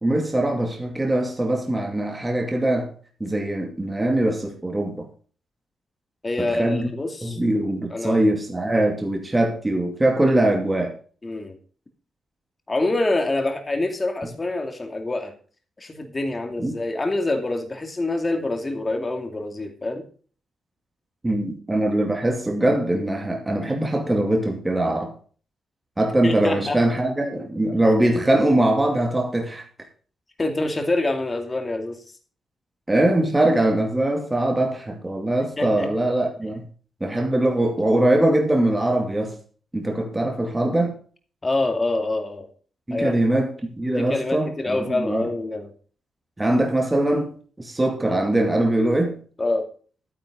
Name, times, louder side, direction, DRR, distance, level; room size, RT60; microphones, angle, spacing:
voice 1, 0.0-2.9 3.2-5.1 6.4-6.9 7.2-10.9 16.6-16.7 21.2-25.1 26.0-29.6 32.9-36.6 37.0-39.4 39.7-40.9 42.9-45.3 46.4-49.2, right 1 dB, 15° right, 2 dB, 2.4 m, -22 dB
voice 2, 6.2-7.4 7.9-8.2 11.2-11.6 12.7-15.3 15.8-20.0 26.2-26.8 27.7-27.8 30.4-32.0 35.6-35.9 41.4-42.5 42.9-43.2 43.9-45.7 49.4-49.7, left 2 dB, 20° left, 4 dB, 2.4 m, -26 dB
12.0 x 10.0 x 3.7 m, 0.41 s
cardioid pair, 140°, 0 cm